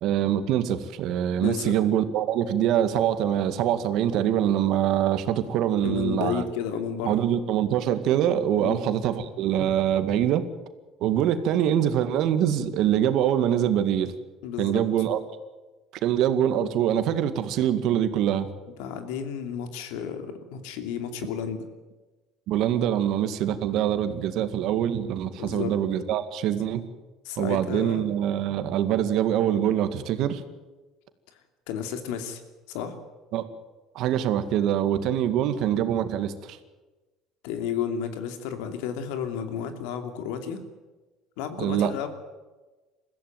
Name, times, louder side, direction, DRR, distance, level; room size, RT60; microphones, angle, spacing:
voice 1, 0.0-6.4 7.0-10.4 11.0-14.1 14.6-15.2 16.0-18.5 22.5-26.9 27.4-30.4 33.3-33.4 34.0-36.6 41.6-41.9, right 10 dB, 65° right, 10 dB, 2.0 m, -24 dB
voice 2, 1.4-1.8 5.8-7.2 8.6-8.8 11.1-11.2 14.4-14.8 18.8-21.7 25.4-25.7 27.2-28.0 31.7-32.4 32.7-33.0 37.4-40.6 41.4-42.1, left 8 dB, 80° left, 7 dB, 2.8 m, -32 dB
21.5 x 15.5 x 9.4 m, 1.2 s
supercardioid pair, 110°, 0 cm